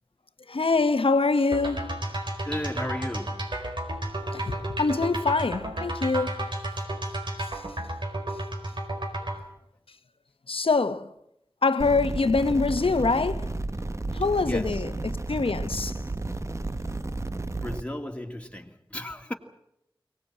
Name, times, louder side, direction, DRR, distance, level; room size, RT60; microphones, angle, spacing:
voice 1, 0.5-2.0 4.3-6.5 7.4-7.5 10.5-11.1 11.6-13.5 14.1-16.0, left 3 dB, 85° left, 1.0 m, -25 dB
sound 1, 1.5-9.4, right 1 dB, 60° right, 4.6 m, -32 dB
voice 2, 2.4-3.5 14.4-14.8 17.5-19.3, left 1 dB, 15° left, 2.4 m, -35 dB
sound 2, 11.8-17.8, right 2 dB, 35° right, 0.9 m, -32 dB
23.5 x 19.0 x 8.8 m
wide cardioid pair, 45°, 9 cm